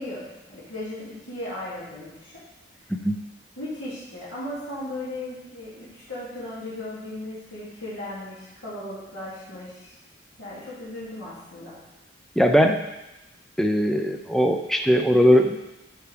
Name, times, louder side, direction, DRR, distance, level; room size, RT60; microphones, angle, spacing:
voice 1, 0.0-2.4 3.6-9.9 10.4-11.8, left 1 dB, 75° left, -9 dB, 2.4 m, -36 dB
voice 2, 12.4-12.8 13.6-15.6, equal, ahead, 5 dB, 0.4 m, -19 dB
10.0 x 4.7 x 3.3 m, 0.97 s
head